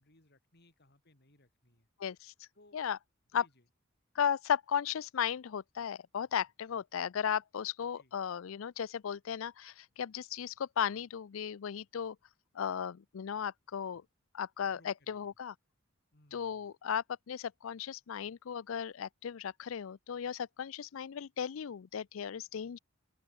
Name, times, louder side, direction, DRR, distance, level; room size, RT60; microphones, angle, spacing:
voice 1, 0.0-1.9 2.5-2.8 3.3-3.6 8.0-8.1 14.6-15.3 16.1-16.7, left 1 dB, 50° left, 4.8 m, -65 dB
voice 2, 2.0-2.5 2.7-3.0 3.3-3.5 4.1-12.2 12.5-14.0 14.3-15.5 16.3-22.8, left 8 dB, 70° left, 0.4 m, -36 dB
open air
head